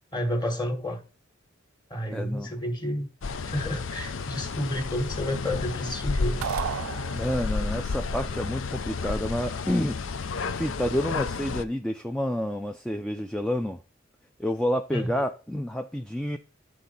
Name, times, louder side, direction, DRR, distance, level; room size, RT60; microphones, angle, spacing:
voice 1, 0.1-1.0 1.9-3.1 3.4-6.4 14.9-15.2, left 1 dB, 20° left, 1.6 m, -30 dB
voice 2, 2.1-2.5 7.1-10.0 10.6-13.8 14.4-16.4, equal, 5° left, 0.4 m, -29 dB
sound 1, 3.2-11.6, left 4 dB, 75° left, 0.6 m, -32 dB
sound 2, 6.4-7.7, right 9 dB, 85° right, 0.3 m, -33 dB
11.0 x 3.8 x 4.0 m
head